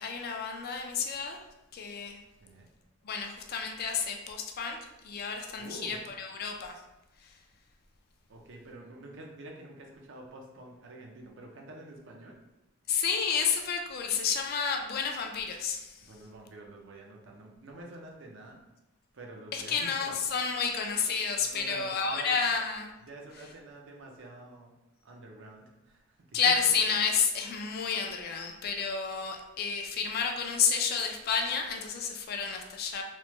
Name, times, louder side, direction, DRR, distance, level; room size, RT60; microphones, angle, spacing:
voice 1, 0.0-1.4 1.7-2.2 3.0-4.8 5.0-6.7 7.2-7.3 12.9-16.1 19.5-22.9 26.3-33.0, left 6 dB, 50° left, 3 dB, 0.3 m, -30 dB
voice 2, 5.5-6.0 8.3-12.4 16.0-18.6 19.1-20.2 21.4-22.3 23.1-24.7 25.0-26.0 26.3-26.5, right 2 dB, 60° right, 0 dB, 0.5 m, -47 dB
3.1 x 2.1 x 3.0 m, 0.97 s
head